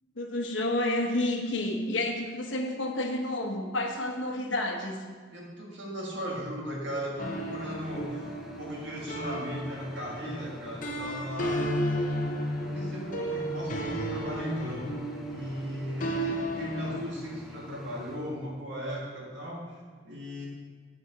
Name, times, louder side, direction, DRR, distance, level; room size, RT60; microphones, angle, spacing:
voice 1, 0.2-5.0, left 1 dB, 80° left, 3 dB, 1.0 m, -30 dB
voice 2, 5.3-8.3 8.6-11.8 12.5-14.9 15.3-20.5, equal, 70° right, -2 dB, 1.8 m, -37 dB
sound 1, 7.2-17.0, equal, 45° left, 0.8 m, -33 dB
sound 2, 7.2-18.2, right 1 dB, ahead, 0.6 m, -49 dB
7.1 x 6.6 x 4.7 m, 1.5 s
head